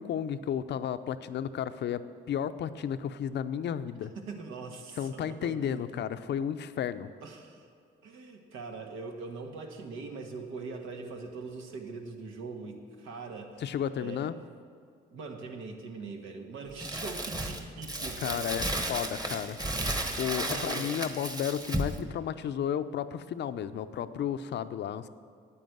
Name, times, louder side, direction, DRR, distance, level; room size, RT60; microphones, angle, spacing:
voice 1, 0.0-2.0 2.3-4.1 5.0-7.1 13.6-14.3 18.2-19.6 20.2-25.1, left 9 dB, 60° left, 12 dB, 0.6 m, -33 dB
voice 2, 4.2-5.8 7.2-7.7 8.0-13.6 13.9-14.3 15.1-19.1 19.8-20.9, right 4 dB, 90° right, 3 dB, 1.5 m, -42 dB
Crumpling crinkling, 16.8-22.0, right 1 dB, 20° right, 1.2 m, -33 dB
9.3 x 8.7 x 7.9 m, 2.2 s
cardioid pair, 90°, 20 cm